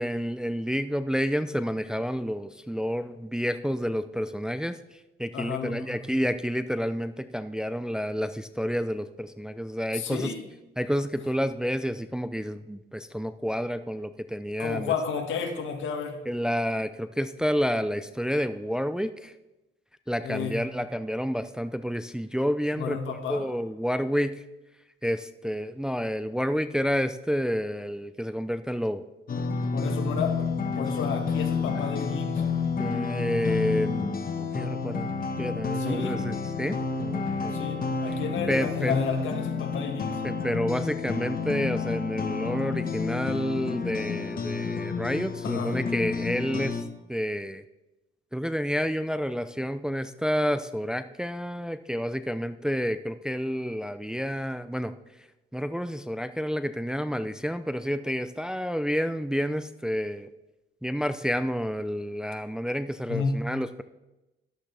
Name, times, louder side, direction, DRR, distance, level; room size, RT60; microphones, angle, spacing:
voice 1, 0.0-10.3 10.8-14.9 16.3-19.3 20.1-24.4 25.0-29.0 30.8-30.9 32.8-35.1 35.4-37.5 38.5-39.0 40.2-46.8 47.1-47.6 48.3-54.9 55.5-60.3 60.8-63.8, equal, 5° right, 11 dB, 0.5 m, -29 dB
voice 2, 5.3-6.0 9.9-10.4 14.6-16.2 20.2-20.6 22.7-23.5 29.7-32.4 35.7-36.2 37.5-40.2 45.4-45.8 63.1-63.4, left 5 dB, 75° left, 3 dB, 1.9 m, -32 dB
sound 1, 29.3-46.8, left 5 dB, 45° left, 1.3 m, -30 dB
13.5 x 11.5 x 3.4 m, 1.0 s
cardioid pair, 90°, 20 cm